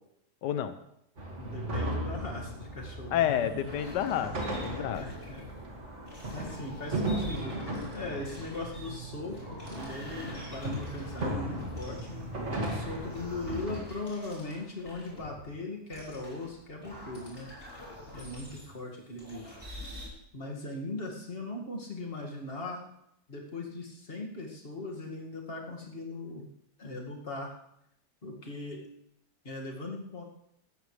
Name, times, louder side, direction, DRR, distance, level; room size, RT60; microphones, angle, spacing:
voice 1, 0.4-0.7 3.1-5.0, left 10 dB, 90° left, 10 dB, 1.4 m, -30 dB
sound 1, 1.2-13.8, right 1 dB, 45° right, 2.4 m, -37 dB
voice 2, 1.4-3.5 4.9-5.5 6.3-7.7 7.9-17.5 18.1-19.6 20.3-22.8 23.3-26.5 26.8-27.5 28.2-28.8 29.4-30.2, left 2 dB, 35° left, 0 dB, 2.3 m, -39 dB
sound 2, 3.3-5.4 6.1-12.2 12.6-15.4 15.9-18.8 19.2-20.1, left 1 dB, 15° left, 4.7 m, -47 dB
16.0 x 13.5 x 3.3 m, 0.77 s
omnidirectional pair, 1.8 m